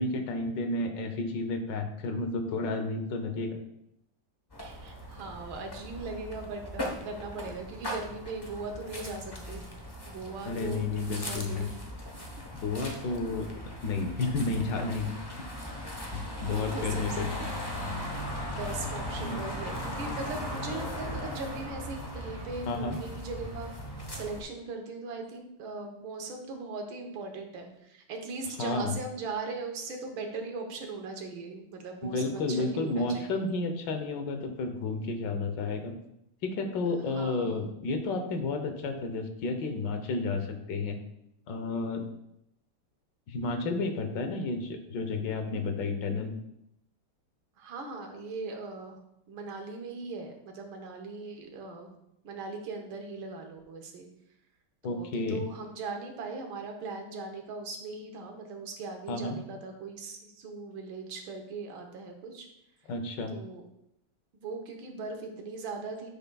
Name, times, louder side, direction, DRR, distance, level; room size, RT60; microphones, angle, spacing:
voice 1, 0.0-3.6 10.4-11.7 12.5-13.5 13.8-15.2 16.1-17.3 19.2-19.4 22.7-23.0 28.6-28.9 32.0-35.9 36.4-41.0 41.5-42.0 43.3-46.4 54.8-55.4 59.1-59.4 62.9-63.3, left 3 dB, 65° left, 6 dB, 1.4 m, -31 dB
sound 1, 4.5-24.4, left 1 dB, 40° left, 0.3 m, -38 dB
voice 2, 4.6-9.6 10.1-10.9 11.2-11.8 12.1-12.2 12.8-13.0 16.0-16.1 16.5-17.2 18.5-23.7 24.1-33.3 37.1-37.6 47.6-49.0 49.3-51.9 52.2-54.1 54.8-62.5 63.3-63.6 64.4-66.1, right 3 dB, 70° right, 3 dB, 1.8 m, -39 dB
9.7 x 7.0 x 2.3 m, 0.80 s
omnidirectional pair, 2.4 m